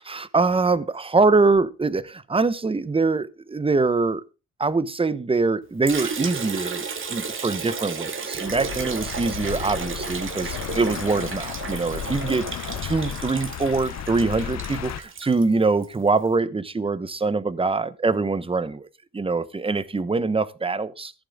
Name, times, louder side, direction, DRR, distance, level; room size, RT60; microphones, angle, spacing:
voice 1, 0.0-4.2 4.6-18.9 19.1-21.1, right 3 dB, 20° right, 1.0 m, -24 dB
Liquid, 5.9-16.0, right 5 dB, 40° right, 2.2 m, -33 dB
sound 1, 8.4-15.0, left 11 dB, 60° left, 0.8 m, -34 dB
14.5 x 11.0 x 3.6 m
cardioid pair, 90°, 30 cm